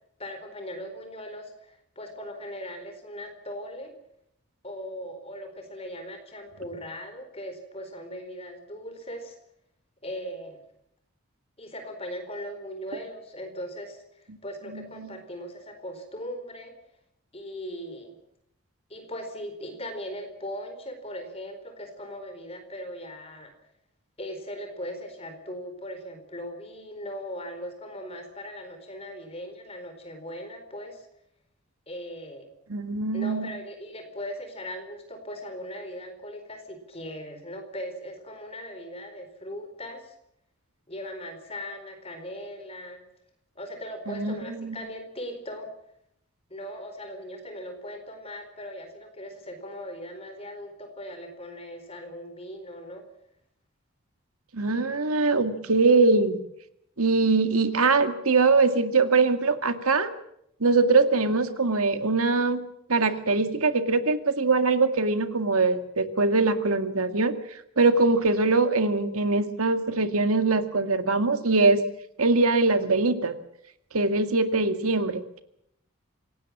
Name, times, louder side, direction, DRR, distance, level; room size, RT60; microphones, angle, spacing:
voice 1, 0.2-3.9 4.6-9.4 10.0-10.6 11.6-16.7 17.3-18.1 18.9-23.5 24.2-31.1 31.9-32.4 33.1-40.1 40.9-43.0 43.6-45.7 46.5-53.0, equal, 25° left, 6 dB, 4.4 m, -39 dB
voice 2, 32.7-33.5 44.1-44.8 54.5-56.4 57.0-60.1 60.6-62.6 62.9-67.3 67.8-71.8 72.2-73.3 73.9-75.4, right 3 dB, 85° right, 9 dB, 2.0 m, -22 dB
26.0 x 18.0 x 7.4 m, 0.75 s
head